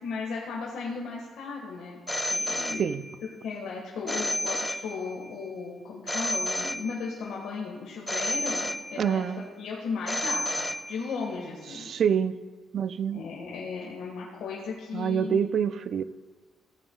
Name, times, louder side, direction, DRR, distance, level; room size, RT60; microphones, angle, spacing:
voice 1, 0.0-2.0 2.2-2.8 3.2-9.2 9.6-11.9 13.1-15.4, left 5 dB, 85° left, -3 dB, 1.6 m, -36 dB
Telephone, 2.1-3.3 4.1-5.3 6.1-7.3 8.1-9.3 10.1-11.3, left 1 dB, 10° left, 0.3 m, -31 dB
voice 2, 9.0-9.4 11.7-12.3 12.7-13.2 14.9-16.0, right 8 dB, 60° right, 14 dB, 0.4 m, -26 dB
15.5 x 9.1 x 2.4 m, 1.4 s
cardioid pair, 90°, 0 cm